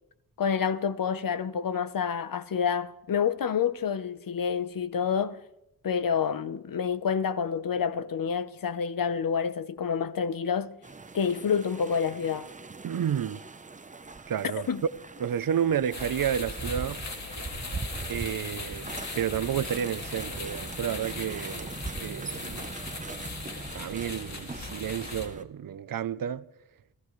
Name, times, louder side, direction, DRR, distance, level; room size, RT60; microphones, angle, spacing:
voice 1, 0.4-5.4 5.8-10.7 11.1-12.5 14.7-14.8, left 7 dB, 60° left, 0.9 m, -28 dB
sound 1, 10.8-25.4, right 3 dB, 20° right, 0.7 m, -41 dB
voice 2, 12.8-13.4 14.3-14.7 15.2-17.0 18.1-18.9 19.2-21.8 22.0-22.7 23.7-26.4, right 9 dB, 60° right, 0.7 m, -30 dB
sound 2, 15.9-25.3, left 3 dB, 45° left, 2.4 m, -39 dB
28.5 x 15.0 x 3.2 m
wide cardioid pair, 95°, 38 cm